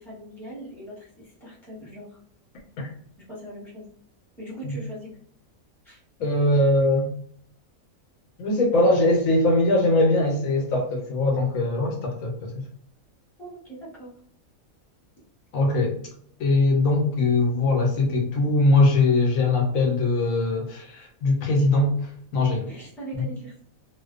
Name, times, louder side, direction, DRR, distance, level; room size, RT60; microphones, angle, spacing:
voice 1, 0.0-2.2 3.3-3.9 4.4-5.1 5.8-6.0 13.4-14.1 22.7-23.6, right 1 dB, ahead, -7 dB, 0.7 m, -40 dB
voice 2, 6.2-7.1 8.4-12.6 15.5-15.9 16.4-22.6 23.1-23.2, left 2 dB, 75° left, 1 dB, 1.0 m, -21 dB
2.5 x 2.1 x 2.4 m, 0.64 s
omnidirectional pair, 1.5 m